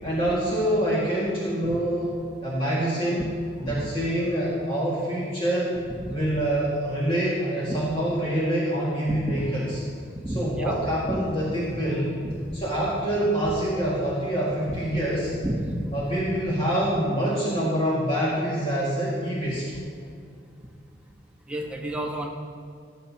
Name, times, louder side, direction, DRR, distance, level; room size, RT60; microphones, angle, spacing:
voice 1, 0.0-3.3 3.6-5.8 6.1-9.8 10.3-12.1 12.5-15.3 15.9-19.6, right 1 dB, 30° left, -8 dB, 1.9 m, -26 dB
voice 2, 10.2-10.7 11.0-11.2 14.7-14.8 15.4-15.7 21.5-22.3, right 1 dB, 5° right, -1 dB, 1.0 m, -30 dB
18.5 x 7.9 x 2.8 m, 2.3 s
head